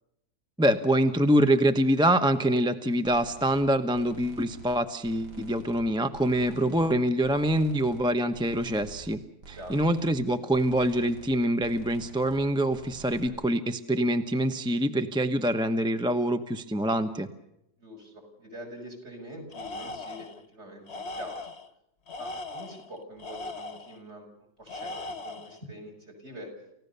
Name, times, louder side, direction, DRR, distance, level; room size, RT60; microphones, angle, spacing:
voice 1, 0.6-9.2 9.5-17.3, right 1 dB, 5° right, 9 dB, 0.7 m, -25 dB
sound 1, 3.0-3.6 3.9-4.8 5.0-5.9 6.1-7.0 7.2-8.0 8.3-9.1 9.4-10.2 10.5-11.3 11.6-12.4 12.7-13.3, right 3 dB, 80° right, 3.5 m, -47 dB
voice 2, 17.8-21.5 22.2-26.5, equal, 40° right, 3 dB, 7.4 m, -45 dB
Tools, 19.5-20.4 20.9-21.7 22.1-24.0 24.7-25.6, left 2 dB, 45° left, 1.2 m, -39 dB
29.5 x 16.0 x 6.9 m, 0.83 s
omnidirectional pair, 1.8 m